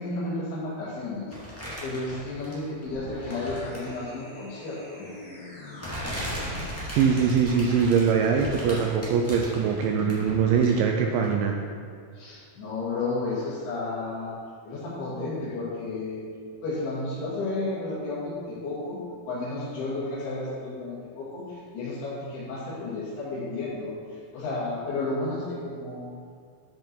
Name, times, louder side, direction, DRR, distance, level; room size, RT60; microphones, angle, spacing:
voice 1, 0.0-1.4 1.8-5.1 12.1-14.4 14.6-16.3 16.6-19.0 19.3-26.2, left 2 dB, 80° left, -10 dB, 4.3 m, -32 dB
sound 1, 1.3-2.8 3.2-4.0 5.0-5.1 5.8-10.9 11.2-11.3, equal, 10° left, 0.9 m, -37 dB
sound 2, 2.8-7.0, left 1 dB, 40° left, 0.9 m, -42 dB
voice 2, 6.9-11.6, right 6 dB, 80° right, 2 dB, 2.1 m, -22 dB
12.0 x 5.6 x 4.6 m, 2.2 s
omnidirectional pair, 4.5 m